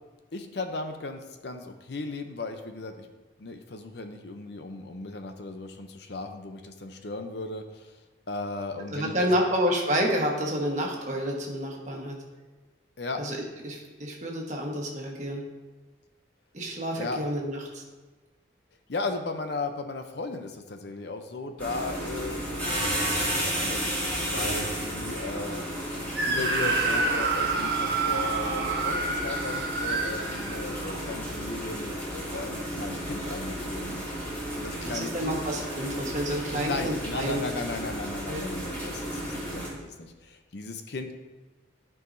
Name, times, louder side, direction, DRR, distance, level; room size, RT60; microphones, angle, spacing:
voice 1, 0.3-3.1 3.4-8.0 8.3-9.5 13.0-13.2 17.0-17.2 18.9-34.0 34.6-35.4 36.5-41.2, left 3 dB, 60° left, 6 dB, 0.6 m, -36 dB
voice 2, 8.9-12.2 13.2-13.4 13.6-15.4 16.5-17.8 34.8-37.4 38.3-38.5, equal, 40° right, -1 dB, 1.3 m, -29 dB
sound 1, 21.6-39.7, equal, 10° left, 2.1 m, -33 dB
Screaming, 26.1-31.0, right 3 dB, 55° right, 1.1 m, -28 dB
13.0 x 4.7 x 2.7 m, 1.2 s
head